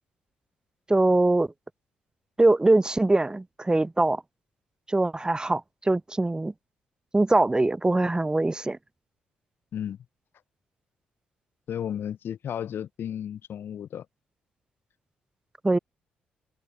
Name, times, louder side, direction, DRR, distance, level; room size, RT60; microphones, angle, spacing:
voice 1, 0.9-1.5 2.4-4.2 4.9-6.5 7.1-8.8 15.6-15.8, right 2 dB, 20° right, 2.5 m, -22 dB
voice 2, 11.7-14.1, left 9 dB, 55° left, 2.5 m, -33 dB
figure-of-eight pair, 40°, 4 cm